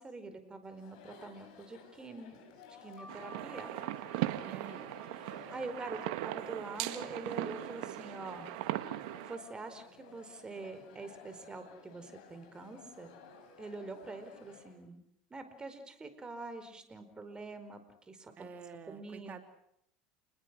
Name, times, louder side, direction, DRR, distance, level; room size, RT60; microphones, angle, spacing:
voice 1, 0.0-2.4 2.8-3.7 5.2-8.5 9.2-13.1 13.6-15.0 15.3-17.8 18.1-18.3 18.9-19.4, right 3 dB, 20° right, 9 dB, 4.6 m, -45 dB
Chatter, 0.6-14.8, left 5 dB, 80° left, 6.1 m, -56 dB
sound 1, 3.0-8.2, right 2 dB, ahead, 6.8 m, -57 dB
sound 2, 3.1-9.4, right 15 dB, 75° right, 1.6 m, -39 dB
voice 2, 4.4-5.0 18.4-19.4, right 6 dB, 40° right, 7 dB, 3.1 m, -48 dB
30.0 x 21.0 x 6.2 m, 0.74 s
supercardioid pair, 95°, 4 cm